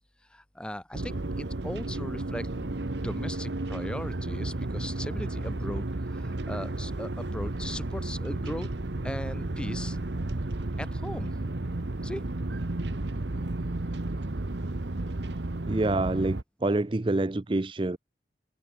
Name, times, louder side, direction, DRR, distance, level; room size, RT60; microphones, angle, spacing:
voice 1, 0.0-8.7 9.0-10.0 10.8-11.3 12.0-12.2, equal, 5° left, 1.1 m, -38 dB
sound 1, 0.9-16.4, right 2 dB, 80° right, 1.1 m, -33 dB
voice 2, 15.7-18.0, right 2 dB, 30° right, 0.5 m, -27 dB
head